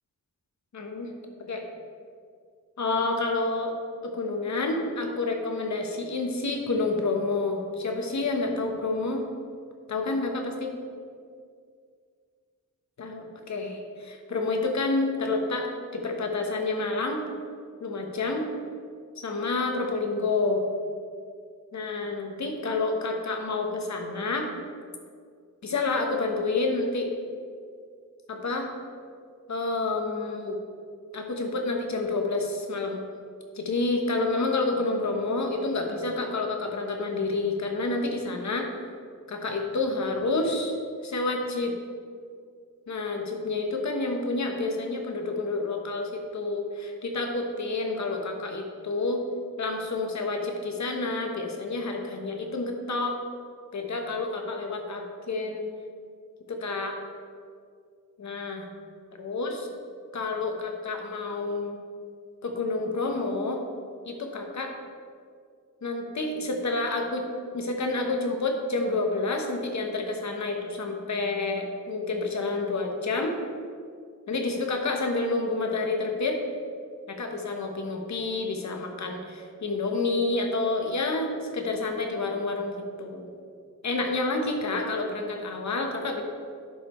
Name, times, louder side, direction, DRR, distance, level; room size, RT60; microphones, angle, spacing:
voice 1, 0.7-1.1 1.5-1.6 2.8-3.7 4.0-9.2 9.9-10.7 13.0-17.2 17.8-18.4 19.2-20.6 21.7-24.5 25.6-27.1 28.3-28.7 29.5-30.6 31.1-33.0 33.5-38.7 39.3-40.8 41.0-41.7 42.9-49.2 49.6-53.2 53.7-55.6 56.5-57.0 58.2-58.7 59.2-59.7 60.1-61.8 62.4-63.6 64.0-64.7 65.8-67.2 67.5-73.3 74.3-76.4 77.1-83.3 83.8-86.2, left 3 dB, 60° left, 3 dB, 1.2 m, -29 dB
11.5 x 5.1 x 4.4 m, 2.1 s
wide cardioid pair, 155°, 33 cm